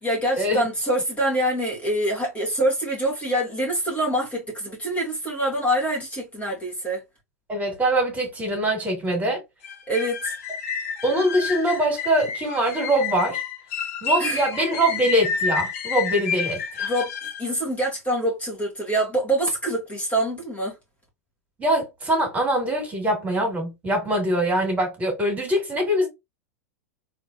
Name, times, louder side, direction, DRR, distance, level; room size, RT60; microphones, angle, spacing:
voice 1, 0.0-7.0 9.9-10.3 14.2-14.4 16.8-20.8, right 1 dB, 15° left, 2.3 m, -25 dB
voice 2, 7.5-9.4 11.0-13.4 14.0-16.9 21.6-26.1, right 1 dB, 20° right, 2.6 m, -23 dB
sound 1, 9.6-17.5, left 6 dB, 60° left, 0.9 m, -30 dB
3.7 x 3.3 x 2.7 m
figure-of-eight pair, 95°, 8 cm